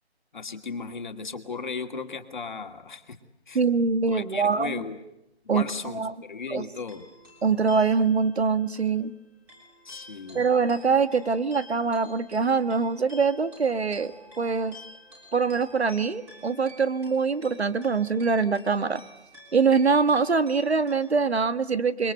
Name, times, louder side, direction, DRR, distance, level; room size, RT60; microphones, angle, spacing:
voice 1, 0.3-3.2 3.5-3.6 4.1-5.0 5.4-7.0 9.8-10.5, left 4 dB, 45° left, 6 dB, 2.4 m, -36 dB
voice 2, 3.5-4.8 5.5-6.1 6.5-6.7 7.4-9.1 10.3-14.8 15.3-19.0 19.5-22.1, right 5 dB, 70° right, 12 dB, 1.7 m, -24 dB
sound 1, 6.9-21.0, left 1 dB, 5° right, 3.1 m, -50 dB
28.5 x 22.0 x 8.1 m, 0.88 s
hypercardioid pair, 175°, 33 cm